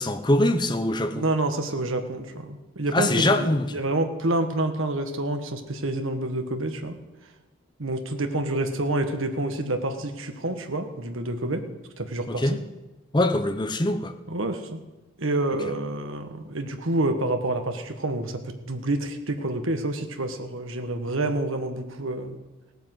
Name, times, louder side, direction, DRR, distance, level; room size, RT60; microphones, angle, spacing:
voice 1, 0.0-1.2 2.9-3.7 12.3-12.6 13.1-14.1, left 1 dB, 20° left, 9 dB, 0.8 m, -23 dB
voice 2, 1.1-7.0 7.8-11.6 12.0-12.6 14.3-14.8 15.2-22.4, right 2 dB, 65° right, 6 dB, 1.5 m, -28 dB
17.0 x 8.9 x 7.8 m, 1.1 s
head